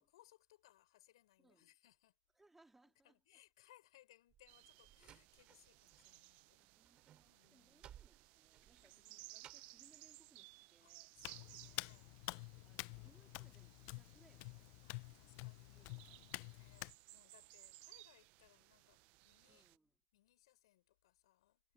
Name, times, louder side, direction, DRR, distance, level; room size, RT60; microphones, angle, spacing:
voice 1, 0.0-2.2 2.8-6.7 7.2-7.9 8.8-9.3 10.8-12.1 14.8-16.1 16.5-19.7 20.1-21.6, left 15 dB, 85° left, 6.4 m, -69 dB
voice 2, 1.4-1.7 2.4-3.2 6.6-11.1 12.6-14.8 15.5-16.2 19.5-19.9, right 2 dB, 10° right, 2.7 m, -72 dB
Slam, 4.3-6.1 6.4-9.9, right 11 dB, 40° right, 3.6 m, -62 dB
sound 1, 4.5-19.8, right 23 dB, 60° right, 0.5 m, -61 dB
Hands, 11.2-16.9, left 25 dB, 65° left, 0.5 m, -49 dB
supercardioid pair, 120°, 3 cm